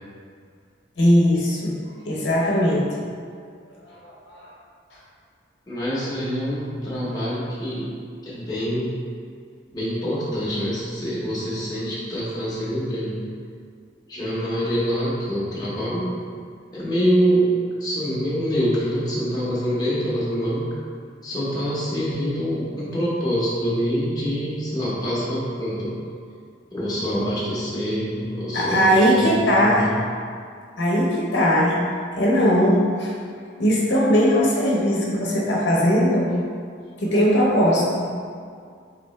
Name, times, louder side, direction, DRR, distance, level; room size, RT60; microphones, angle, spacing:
voice 1, 1.0-1.7 2.1-2.9 4.0-4.5 28.5-29.9 30.8-31.8 32.2-33.1 33.6-36.3 37.0-38.1, equal, 65° left, -4 dB, 0.8 m, -19 dB
voice 2, 5.7-7.9 8.2-8.9 9.7-13.2 14.1-16.2 16.7-20.7 21.2-25.9 26.7-30.0, equal, 20° left, -9 dB, 0.9 m, -25 dB
3.9 x 3.3 x 3.2 m, 2.2 s
head